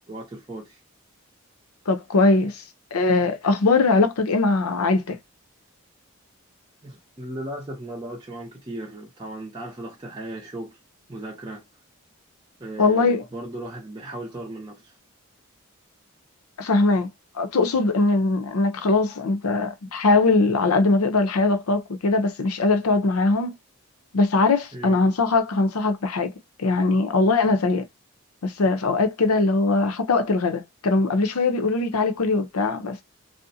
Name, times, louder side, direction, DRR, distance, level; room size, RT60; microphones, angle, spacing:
voice 1, 0.1-0.8 6.8-10.8 11.1-11.6 12.6-14.9 24.7-25.0, right 1 dB, 20° right, 0.5 m, -36 dB
voice 2, 1.9-2.6 2.9-5.2 12.8-13.2 16.6-17.1 17.4-23.5 24.1-26.3 26.6-27.8 28.4-33.0, left 3 dB, 85° left, 0.6 m, -21 dB
2.5 x 2.1 x 2.6 m
head